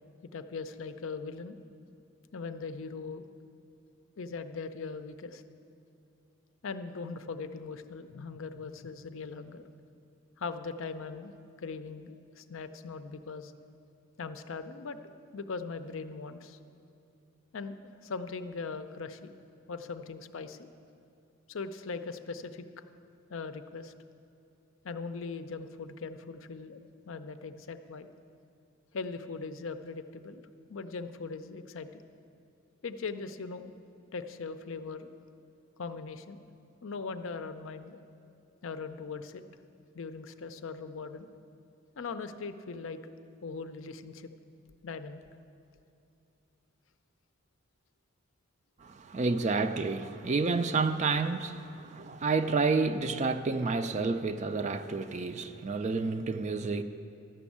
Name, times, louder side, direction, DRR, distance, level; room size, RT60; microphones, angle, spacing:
voice 1, 0.3-1.6 2.3-3.3 4.2-5.4 6.6-9.6 10.4-13.5 14.2-15.0 15.3-16.6 17.5-19.3 19.7-20.7 21.5-22.6 23.3-23.9 24.8-28.1 28.9-30.4 30.7-32.0 32.8-33.7 34.1-35.1 35.8-36.4 36.8-38.0 38.6-39.4 39.9-41.3 42.0-43.1 43.4-44.3 44.8-45.2, left 4 dB, 65° left, 0.5 m, -40 dB
voice 2, 48.8-56.8, right 4 dB, 35° right, 0.4 m, -30 dB
12.5 x 6.2 x 8.4 m
head